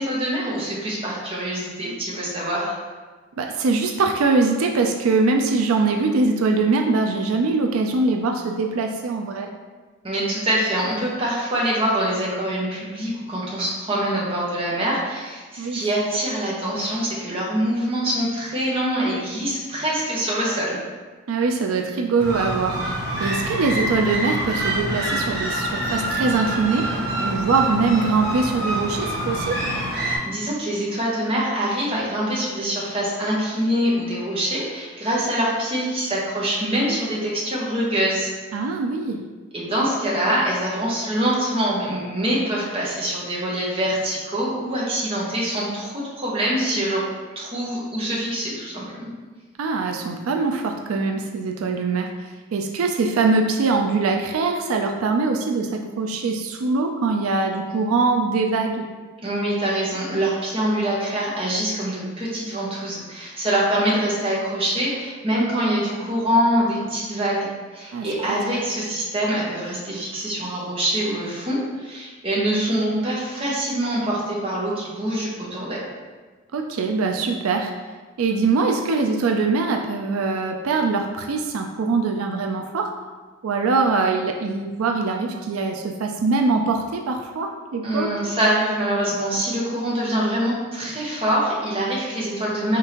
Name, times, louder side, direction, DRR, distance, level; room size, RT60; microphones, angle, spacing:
voice 1, 0.0-2.8 10.0-20.8 29.9-38.3 39.5-47.1 47.4-49.1 59.2-75.9 87.8-92.8, right 1 dB, 25° right, -5 dB, 1.0 m, -24 dB
voice 2, 3.4-9.5 15.6-15.9 21.3-22.9 23.2-26.9 27.2-29.7 38.5-39.2 49.6-52.1 52.5-58.8 67.9-68.1 76.5-77.7 78.2-82.9 83.4-88.2, right 4 dB, 85° right, 3 dB, 0.4 m, -22 dB
sound 1, 22.2-30.2, right 1 dB, 50° right, 1.2 m, -26 dB
5.1 x 3.5 x 2.9 m, 1.3 s
head